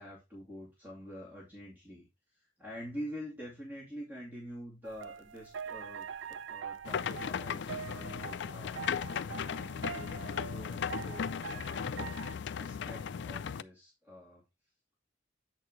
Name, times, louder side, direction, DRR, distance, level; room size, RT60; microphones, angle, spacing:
voice 1, 0.0-2.1 2.6-8.9 9.3-12.1 12.5-14.4, equal, 10° right, -4 dB, 2.6 m, -46 dB
sound 1, 4.8-12.4, right 7 dB, 85° right, 0.5 m, -44 dB
sound 2, 6.8-13.6, left 7 dB, 65° left, 0.4 m, -37 dB
8.2 x 6.5 x 3.1 m, 0.22 s
head